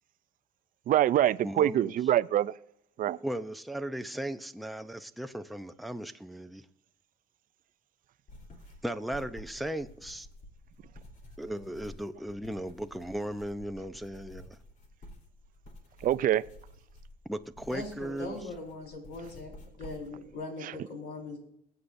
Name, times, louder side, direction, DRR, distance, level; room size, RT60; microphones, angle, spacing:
voice 1, 0.9-2.5 3.0-3.2 16.0-16.4 20.6-20.7, right 12 dB, 55° right, 0.5 m, -25 dB
voice 2, 1.4-1.9 3.2-6.7 8.8-10.3 11.4-14.6 17.2-18.4, right 1 dB, ahead, 0.6 m, -37 dB
sound 1, 8.3-20.3, left 1 dB, 50° left, 3.2 m, -51 dB
voice 3, 17.7-19.5 19.8-21.4, left 2 dB, 75° left, 4.8 m, -40 dB
22.5 x 8.2 x 2.6 m
cardioid pair, 110°, 17 cm